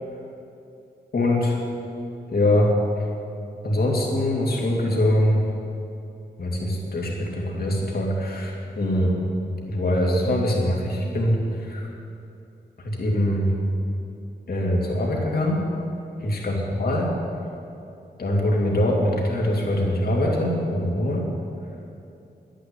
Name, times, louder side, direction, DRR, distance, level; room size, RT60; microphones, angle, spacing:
voice 1, 1.1-1.6 2.3-2.7 3.6-5.5 6.4-9.2 9.7-11.9 12.8-13.5 14.5-15.6 16.2-17.1 18.2-21.3, left 1 dB, 60° left, -2 dB, 2.7 m, -23 dB
11.5 x 10.0 x 9.6 m, 2.7 s
wide cardioid pair, 165°, 18 cm